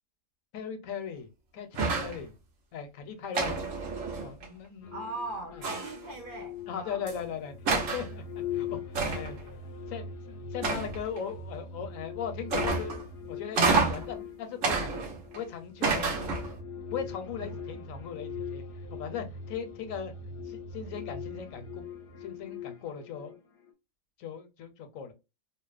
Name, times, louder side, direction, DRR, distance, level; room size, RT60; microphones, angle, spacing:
voice 1, 0.5-2.3 2.7-3.6 4.2-5.0 5.5-5.6 6.7-8.2 8.5-9.4 9.9-13.0 13.3-15.0 15.3-16.6 16.9-18.6 18.9-20.1 20.4-21.8 22.2-23.4 24.2-25.1, left 7 dB, 85° left, 1.0 m, -38 dB
sound 1, 1.7-2.2 3.3-4.5 5.6-6.1 7.1-7.2 7.7-8.1 8.9-9.4 10.6-11.2 12.5-13.0 13.5-14.1 14.6-15.4 15.8-16.6, right 4 dB, 75° right, 1.2 m, -29 dB
sound 2, 4.8-23.7, left 6 dB, 60° left, 0.6 m, -41 dB
voice 2, 4.9-7.0 17.4-17.6, right 2 dB, 55° right, 0.6 m, -40 dB
2.8 x 2.0 x 2.3 m
omnidirectional pair, 1.4 m